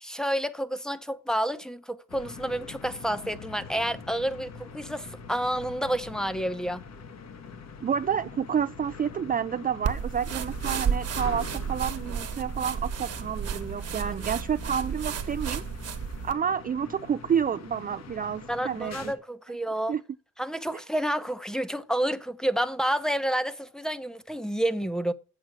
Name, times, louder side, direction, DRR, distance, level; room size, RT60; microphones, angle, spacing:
voice 1, 0.0-6.8 18.5-19.9 20.4-25.1, right 1 dB, ahead, 0.9 m, -29 dB
sound 1, 2.1-19.1, left 5 dB, 60° left, 1.7 m, -44 dB
voice 2, 7.8-15.6 16.2-19.1 19.9-20.0, right 7 dB, 30° right, 0.4 m, -29 dB
sound 2, 9.8-16.3, right 7 dB, 55° right, 1.4 m, -32 dB
7.9 x 7.6 x 6.1 m
cardioid pair, 90°, 30 cm